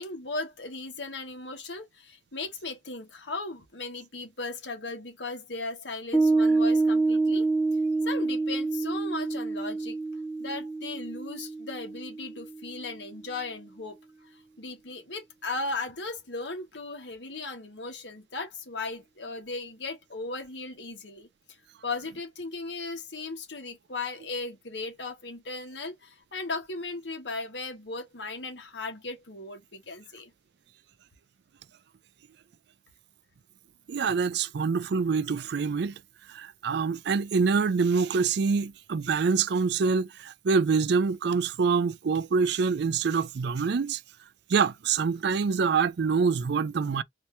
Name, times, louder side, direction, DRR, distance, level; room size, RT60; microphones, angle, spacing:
voice 1, 0.0-7.5 8.0-10.0 10.4-14.0 14.3-21.3 21.8-30.3, left 3 dB, 70° left, 1.3 m, -37 dB
Piano, 6.1-12.9, right 3 dB, 15° left, 0.9 m, -27 dB
voice 2, 33.9-36.0 36.3-44.0 44.5-47.0, right 5 dB, 65° right, 0.4 m, -25 dB
4.2 x 2.6 x 3.3 m
head